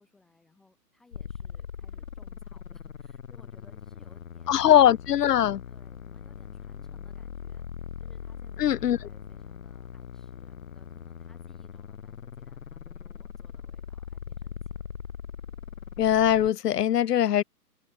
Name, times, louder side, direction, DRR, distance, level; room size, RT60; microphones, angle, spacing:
voice 1, 0.0-5.0 5.7-14.9, left 3 dB, ahead, 0.6 m, -63 dB
sound 1, 1.1-16.5, left 7 dB, 55° left, 1.4 m, -41 dB
voice 2, 4.5-5.6 8.6-9.0 16.0-17.4, left 11 dB, 80° left, 0.5 m, -21 dB
figure-of-eight pair, 145°, 48 cm